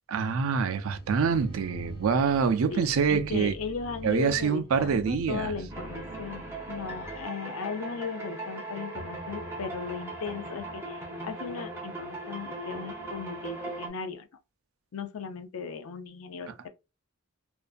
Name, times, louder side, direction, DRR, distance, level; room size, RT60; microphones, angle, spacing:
voice 1, 0.1-3.5 4.0-5.5, right 6 dB, 75° right, 0.4 m, -26 dB
sound 1, 0.9-7.2, equal, 25° left, 0.7 m, -45 dB
voice 2, 2.7-14.3 14.9-16.7, left 5 dB, 70° left, 0.4 m, -37 dB
sound 2, 5.7-13.9, right 2 dB, 10° right, 0.5 m, -39 dB
2.5 x 2.2 x 2.4 m
head